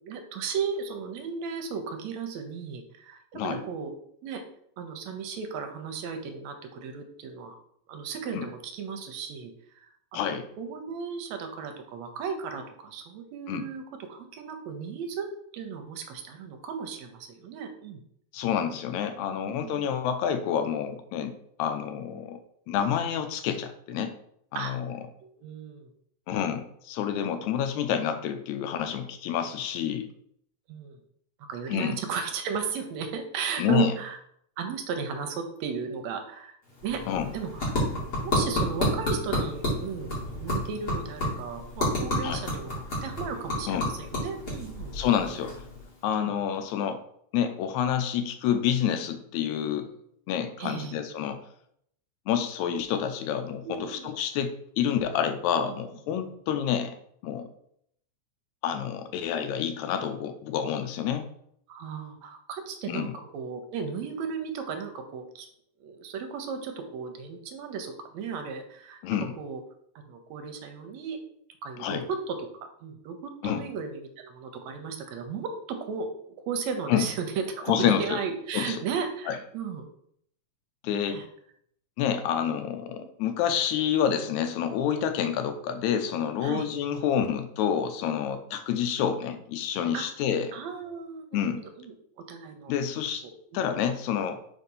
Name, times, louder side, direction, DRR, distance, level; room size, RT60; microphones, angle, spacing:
voice 1, 0.0-3.9 4.2-4.4 4.8-7.6 7.9-15.3 15.5-18.0 19.4-20.0 23.9-24.1 24.6-24.7 25.2-25.9 27.9-28.0 30.7-31.0 31.5-34.2 34.6-36.6 36.8-37.0 37.3-44.9 46.1-46.3 50.6-51.0 53.6-54.1 55.7-55.8 61.7-65.5 65.8-69.0 69.4-69.6 70.1-71.2 71.6-72.5 72.8-79.8 80.9-81.2 83.0-83.1 86.4-86.7 89.9-90.1 90.5-91.5 91.8-92.7 93.2-93.7, right 6 dB, 75° right, 6 dB, 1.9 m, -35 dB
voice 2, 10.1-10.5 13.5-13.7 18.3-21.3 21.6-22.4 22.7-24.1 24.5-25.0 26.3-30.1 31.7-32.0 33.6-33.9 37.1-37.3 42.2-42.4 43.7-43.9 44.9-45.6 46.0-47.0 47.3-49.9 50.3-51.4 52.3-57.0 57.2-57.5 58.6-61.3 62.9-63.1 69.0-69.3 71.8-72.0 73.4-73.6 76.9-77.0 77.7-78.2 78.5-78.8 79.3-79.4 80.8-81.2 82.0-90.5 91.3-91.6 92.7-93.2 93.5-94.6, left 9 dB, 85° left, 8 dB, 2.0 m, -28 dB
sound 1, 36.6-46.1, equal, 35° left, 2.6 m, -31 dB
4.8 x 4.0 x 5.4 m, 0.69 s
omnidirectional pair, 3.3 m